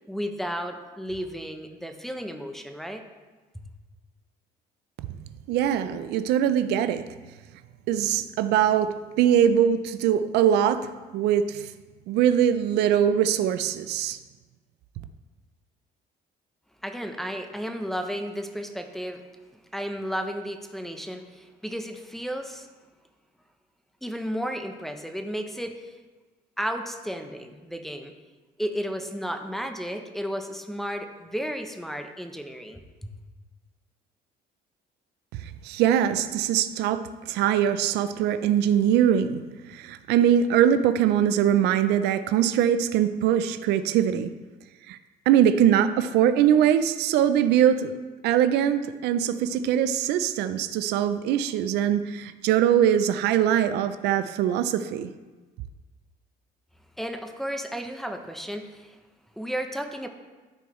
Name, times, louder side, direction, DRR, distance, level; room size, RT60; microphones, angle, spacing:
voice 1, 0.1-3.0 16.8-19.2 19.7-22.7 24.0-25.9 26.6-28.1 28.6-33.1 57.0-59.0 59.4-60.1, equal, ahead, 4 dB, 0.7 m, -33 dB
voice 2, 5.5-7.0 7.9-11.7 12.1-14.2 35.4-39.4 39.7-44.3 44.9-45.0 45.3-48.0 48.2-55.1, right 9 dB, 85° right, 11 dB, 0.5 m, -22 dB
12.5 x 4.7 x 3.1 m, 1.3 s
cardioid pair, 110°, 17 cm